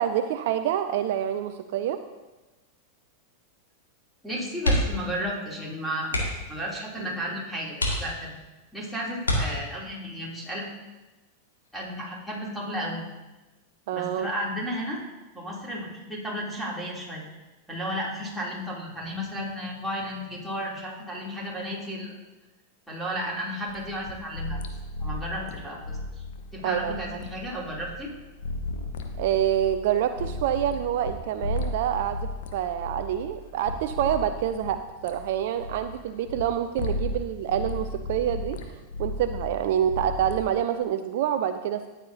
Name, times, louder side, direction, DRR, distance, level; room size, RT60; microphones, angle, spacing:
voice 1, 0.0-2.0 13.9-14.3 26.6-26.9 29.2-38.6 39.0-41.9, right 10 dB, 50° right, 10 dB, 0.4 m, -27 dB
voice 2, 4.2-6.2 6.5-8.3 8.7-10.7 11.7-13.0 13.9-15.0 15.3-17.2 17.7-22.2 22.9-24.6 25.0-26.2 26.5-28.1, equal, ahead, -6 dB, 3.1 m, -33 dB
sound 1, 4.6-5.1 5.4-5.6 6.0-6.5 7.2-7.3 7.7-8.5 9.2-10.0 11.5-11.9 12.2-12.3, left 1 dB, 75° left, 2.1 m, -27 dB
sound 2, 23.7-31.1 31.4-36.4 36.8-37.2 37.5-40.4, left 2 dB, 55° left, 1.1 m, -35 dB
13.5 x 9.3 x 2.8 m, 1.1 s
figure-of-eight pair, 90°, 0 cm